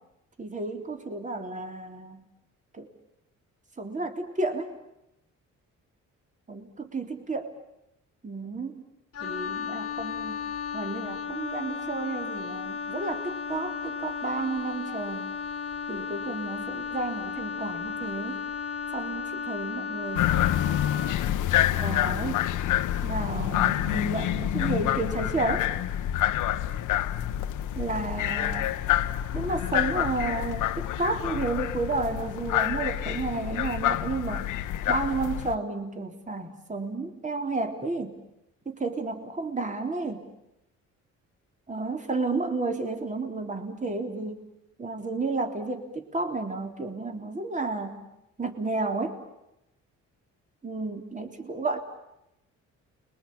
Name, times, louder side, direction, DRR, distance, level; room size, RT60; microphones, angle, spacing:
voice 1, 0.4-2.2 2.7-2.9 3.8-4.8 6.5-7.5 8.2-8.8 9.2-10.4 10.7-15.3 15.9-18.4 18.9-20.7 21.7-22.5 23.0-25.7 27.8-28.7 29.3-34.5 34.9-38.2 38.7-40.3 41.7-44.4 44.8-48.1 48.4-49.2 50.6-51.8, right 3 dB, 25° right, 4 dB, 3.5 m, -32 dB
Wind instrument woodwind instrument, 9.1-21.2, left 6 dB, 50° left, 1.6 m, -34 dB
sound 1, 20.2-35.6, left 12 dB, 85° left, 1.1 m, -27 dB
29.5 x 22.5 x 8.7 m, 0.87 s
cardioid pair, 90°, 30 cm